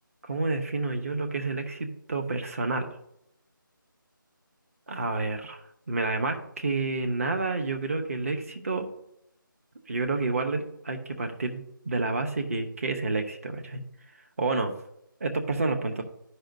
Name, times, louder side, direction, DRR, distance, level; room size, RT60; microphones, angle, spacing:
voice 1, 0.2-3.0 4.9-8.9 9.9-13.8 14.4-14.7 15.2-16.0, right 3 dB, 40° right, 5 dB, 0.9 m, -29 dB
13.0 x 5.3 x 2.6 m, 0.78 s
figure-of-eight pair, 165°, 11 cm